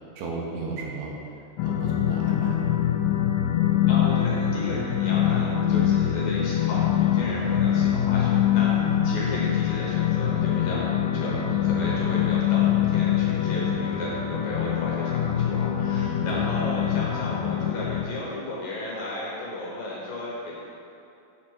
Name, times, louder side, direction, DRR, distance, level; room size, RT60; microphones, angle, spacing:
voice 1, 0.2-1.1 1.6-2.7 7.2-7.4 11.7-12.1 16.3-16.4, right 3 dB, 85° right, -2 dB, 3.2 m, -35 dB
sound 1, 1.6-18.0, left 10 dB, 90° left, 2.0 m, -24 dB
voice 2, 3.9-8.7 9.0-20.6, left 1 dB, 70° left, -5 dB, 2.2 m, -34 dB
8.4 x 3.6 x 6.3 m, 2.7 s
omnidirectional pair, 4.7 m